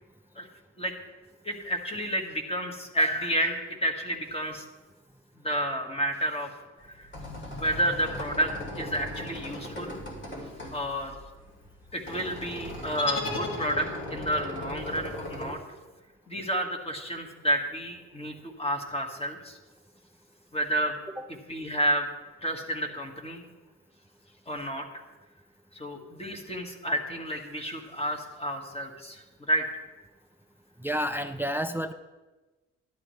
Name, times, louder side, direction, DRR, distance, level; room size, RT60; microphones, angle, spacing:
voice 1, 1.4-4.6 5.3-6.5 6.9-7.1 7.5-10.0 10.7-11.2 11.9-15.6 16.3-19.6 20.5-21.0 21.5-22.1 22.4-23.4 24.5-25.0 25.7-29.6, right 1 dB, 20° left, 3 dB, 1.7 m, -30 dB
sound 1, 6.8-15.5, left 1 dB, 40° left, 2.7 m, -39 dB
sound 2, 13.0-14.3, left 3 dB, 80° left, 2.1 m, -34 dB
voice 2, 30.8-31.9, equal, 5° right, 10 dB, 0.4 m, -30 dB
12.0 x 10.5 x 3.2 m, 1.2 s
cardioid pair, 90°, 30 cm